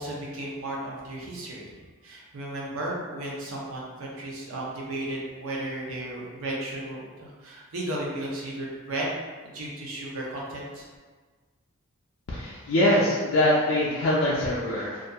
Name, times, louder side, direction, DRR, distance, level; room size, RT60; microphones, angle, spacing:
voice 1, 0.0-1.7 2.0-9.1 9.5-10.9, right 1 dB, 65° right, -4 dB, 0.6 m, -34 dB
voice 2, 12.3-15.0, left 1 dB, 55° left, -7 dB, 0.3 m, -23 dB
2.7 x 2.4 x 2.2 m, 1.4 s
head